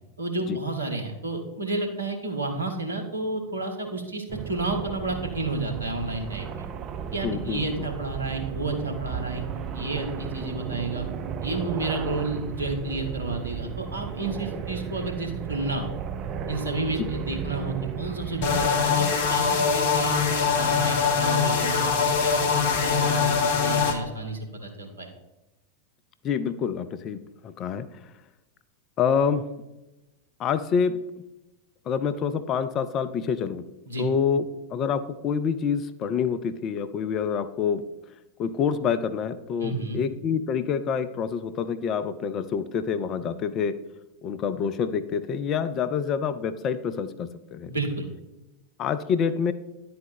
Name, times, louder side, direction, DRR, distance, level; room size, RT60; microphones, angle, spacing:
voice 1, 0.2-6.6 7.1-9.4 9.7-11.1 11.4-16.0 16.5-20.2 20.5-25.1 33.9-34.1 39.6-40.0 47.7-48.1, right 2 dB, 75° right, 3 dB, 1.2 m, -31 dB
sound 1, 4.3-18.7, right 7 dB, 30° right, 0.5 m, -34 dB
voice 2, 7.2-7.8 17.0-17.1 26.2-27.9 29.0-29.4 30.4-31.0 31.9-33.6 34.0-34.5 34.7-37.8 38.4-43.8 44.2-47.7 48.8-49.5, left 7 dB, 30° left, 11 dB, 0.5 m, -27 dB
sound 2, 18.4-23.9, left 6 dB, 50° left, 1.0 m, -23 dB
10.5 x 4.3 x 4.2 m, 0.99 s
figure-of-eight pair, 90°, 0 cm